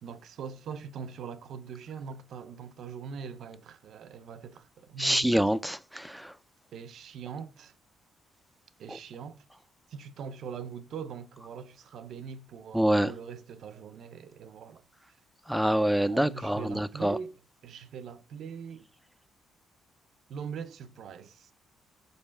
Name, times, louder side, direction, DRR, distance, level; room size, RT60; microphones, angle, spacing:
voice 1, 0.0-5.4 6.7-7.7 8.8-9.4 9.9-14.8 16.1-18.9 20.3-21.5, right 6 dB, 70° right, 0.5 m, -42 dB
voice 2, 5.0-6.3 12.7-13.1 15.5-17.2, right 1 dB, ahead, 0.4 m, -26 dB
5.4 x 4.1 x 4.4 m
cardioid pair, 90°, 0 cm